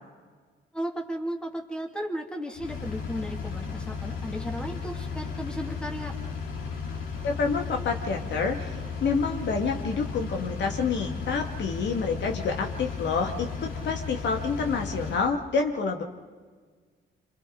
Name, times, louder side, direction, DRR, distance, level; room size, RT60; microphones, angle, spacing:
voice 1, 0.7-6.1, equal, 5° left, 1 dB, 2.5 m, -35 dB
Engine, 2.5-15.2, left 5 dB, 80° left, 3.2 m, -35 dB
voice 2, 7.2-16.0, left 5 dB, 65° left, 2 dB, 2.0 m, -28 dB
27.5 x 26.5 x 3.9 m, 1.5 s
cardioid pair, 90°, 20 cm